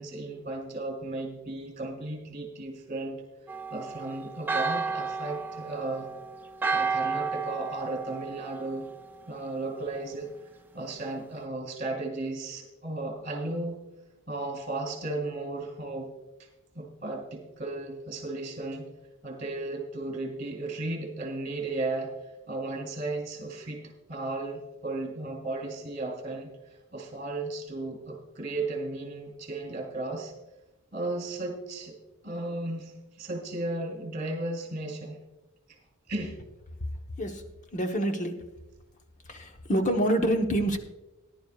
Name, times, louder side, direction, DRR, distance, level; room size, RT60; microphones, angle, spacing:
voice 1, 0.0-3.2 3.7-6.1 6.7-8.9 9.3-10.3 10.7-13.8 14.3-16.1 16.4-16.5 16.7-18.9 19.2-22.1 22.5-30.3 30.9-31.9 32.2-35.2 36.1-36.4, right 2 dB, 35° right, 1 dB, 3.3 m, -35 dB
Church bell, 3.5-9.2, right 4 dB, 10° right, 0.4 m, -32 dB
voice 2, 37.7-38.4 39.3-40.8, right 1 dB, 35° left, 4 dB, 1.0 m, -26 dB
19.0 x 11.0 x 2.4 m, 1.0 s
head